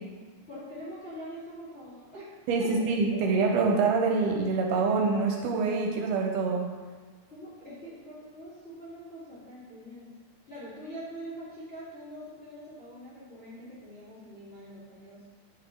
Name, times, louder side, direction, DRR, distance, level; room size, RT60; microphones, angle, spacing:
voice 1, 0.5-2.3 2.6-3.2 7.3-10.1 10.5-15.2, equal, 30° left, -11 dB, 1.5 m, -44 dB
voice 2, 2.5-6.7, right 4 dB, 80° right, 1 dB, 2.1 m, -25 dB
8.3 x 3.9 x 3.6 m, 1.4 s
omnidirectional pair, 3.8 m